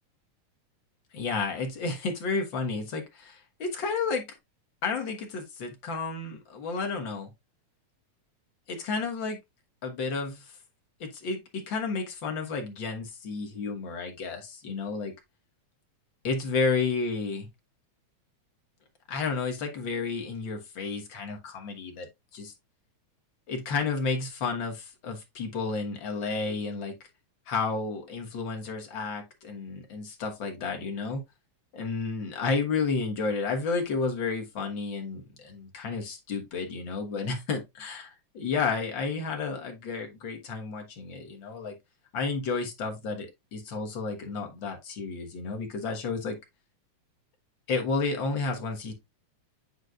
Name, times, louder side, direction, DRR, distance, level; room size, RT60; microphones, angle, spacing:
voice 1, 1.1-4.2 4.8-7.3 8.7-9.4 9.8-10.6 11.0-15.1 16.2-17.5 19.1-22.1 22.3-22.5 23.5-27.0 27.5-31.2 31.7-41.7 42.1-46.4 47.7-48.9, left 4 dB, 50° left, 1.8 m, -31 dB
9.3 x 4.4 x 2.4 m
omnidirectional pair, 3.4 m